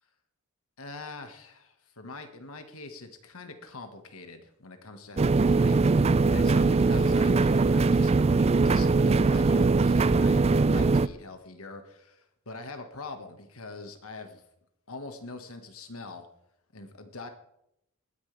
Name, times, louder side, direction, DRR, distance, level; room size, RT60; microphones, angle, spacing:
voice 1, 0.8-14.4 14.9-16.3 16.7-17.3, left 3 dB, 75° left, 7 dB, 1.8 m, -43 dB
sound 1, 5.2-11.1, right 3 dB, 30° right, 0.4 m, -21 dB
20.0 x 10.0 x 3.5 m, 0.79 s
head